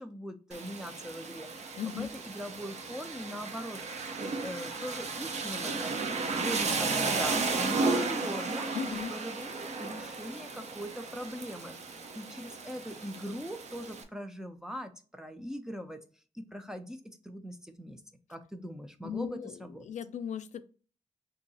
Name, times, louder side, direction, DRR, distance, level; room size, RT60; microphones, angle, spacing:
voice 1, 0.0-3.8 4.2-6.0 6.3-11.7 12.1-16.0 16.3-18.0 18.3-19.8, equal, 5° right, 7 dB, 0.4 m, -41 dB
Rain, 0.5-14.0, right 3 dB, 65° right, 0.6 m, -34 dB
voice 2, 1.8-2.1 8.7-9.1 19.0-20.6, left 8 dB, 80° left, 10 dB, 0.4 m, -37 dB
3.1 x 2.7 x 3.9 m, 0.38 s
wide cardioid pair, 170°, 12 cm